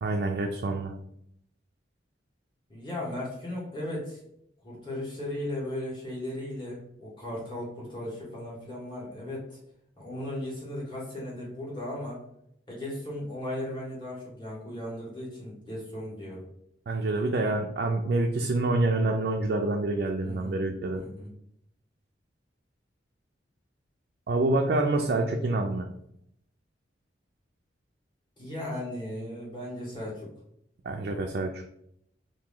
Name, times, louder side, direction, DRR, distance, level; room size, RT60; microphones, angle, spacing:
voice 1, 0.0-0.9 16.9-21.0 24.3-25.9 30.8-31.6, right 2 dB, 55° right, 2 dB, 0.3 m, -27 dB
voice 2, 2.7-4.2 4.6-9.6 10.0-12.2 12.7-16.4 20.2-20.5 20.9-21.3 28.4-30.3, left 1 dB, 25° left, -6 dB, 1.5 m, -36 dB
3.0 x 2.7 x 3.7 m, 0.74 s
head